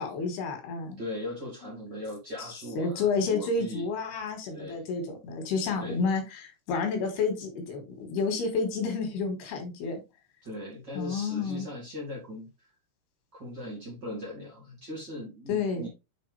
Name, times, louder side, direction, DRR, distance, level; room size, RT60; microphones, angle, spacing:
voice 1, 0.0-1.0 1.6-1.8 2.8-10.0 11.0-11.7 15.5-15.9, left 4 dB, 85° left, 3.9 m, -30 dB
voice 2, 1.0-3.9 4.4-4.8 5.8-6.0 10.4-12.7 13.3-15.9, left 1 dB, 35° right, 2.1 m, -39 dB
7.5 x 4.1 x 3.3 m
omnidirectional pair, 4.4 m